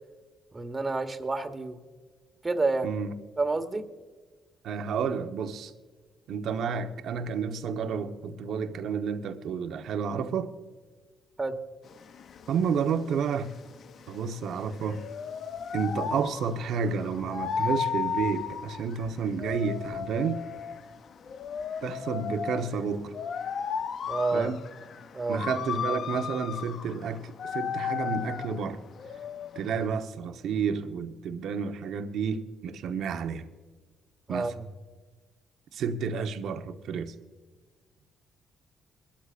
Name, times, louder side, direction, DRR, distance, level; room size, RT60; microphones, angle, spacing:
voice 1, 0.5-1.8 2.4-2.9 3.4-3.9 11.4-11.6 24.1-24.5 25.1-25.4 34.3-34.7, right 3 dB, 25° right, 1.4 m, -29 dB
voice 2, 2.8-3.2 4.6-5.7 6.3-10.6 12.5-13.5 14.1-15.0 15.7-20.4 21.8-23.2 24.3-24.6 25.3-28.8 29.5-33.5 34.3-34.5 35.7-37.1, right 6 dB, 75° right, 1.1 m, -30 dB
sound 1, 11.9-29.9, left 7 dB, 60° left, 0.6 m, -35 dB
22.5 x 13.0 x 2.5 m
cardioid pair, 90°, 0 cm